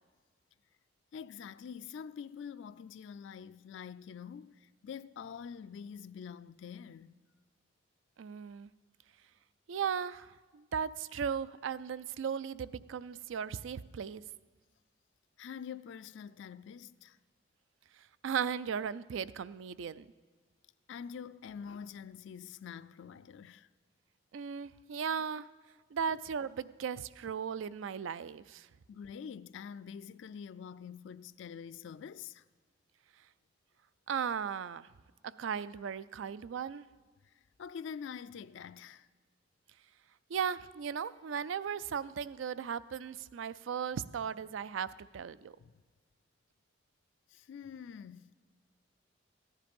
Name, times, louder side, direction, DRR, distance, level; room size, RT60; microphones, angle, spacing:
voice 1, 1.1-7.1 15.4-17.2 20.9-23.7 24.9-25.0 28.9-32.4 37.2-37.3 37.6-39.1 45.6-45.8 47.3-48.3, left 7 dB, 65° left, 0.3 m, -46 dB
voice 2, 8.2-8.7 9.7-14.2 18.2-20.1 24.3-25.5 25.9-28.7 34.1-34.9 35.2-36.9 40.3-45.6, right 7 dB, 75° right, 0.4 m, -37 dB
14.5 x 10.5 x 5.3 m
head